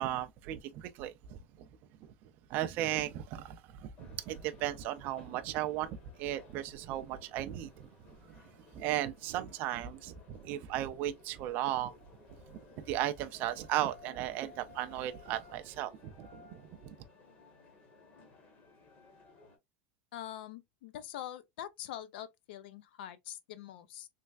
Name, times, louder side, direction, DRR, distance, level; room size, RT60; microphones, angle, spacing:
voice 1, 0.0-1.7 2.0-2.1 2.5-7.9 8.6-11.9 12.5-17.0, right 13 dB, 35° right, 0.3 m, -36 dB
sound 1, 4.0-19.6, left 4 dB, 25° left, 1.0 m, -58 dB
voice 2, 20.1-24.1, left 11 dB, 65° left, 0.4 m, -44 dB
3.2 x 3.1 x 2.3 m
supercardioid pair, 175°, 6 cm